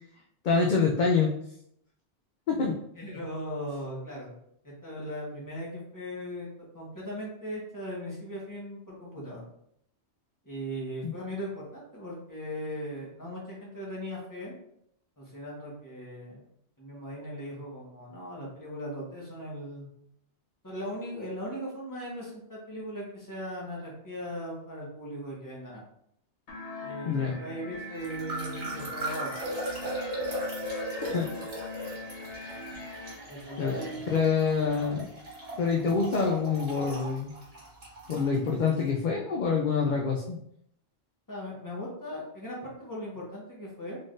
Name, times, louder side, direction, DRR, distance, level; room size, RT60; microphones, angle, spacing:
voice 1, 0.4-1.3 2.5-2.7 11.0-11.1 27.0-27.4 31.0-31.3 33.6-33.7 34.1-35.1 35.6-37.3 38.1-40.4, left 5 dB, 60° left, 0 dB, 0.5 m, -26 dB
voice 2, 2.9-4.3 4.6-6.5 6.7-9.4 10.4-14.5 15.2-16.4 16.8-19.9 20.6-25.8 26.8-29.3 33.3-33.9 41.3-44.0, equal, 15° left, -5 dB, 1.3 m, -38 dB
sound 1, 26.5-33.1, left 1 dB, 80° left, 1.1 m, -41 dB
sound 2, 28.0-38.8, right 1 dB, 70° right, 1.7 m, -38 dB
sound 3, 33.8-36.2, right 4 dB, 50° right, 0.8 m, -48 dB
3.8 x 3.7 x 2.5 m, 0.72 s
omnidirectional pair, 1.2 m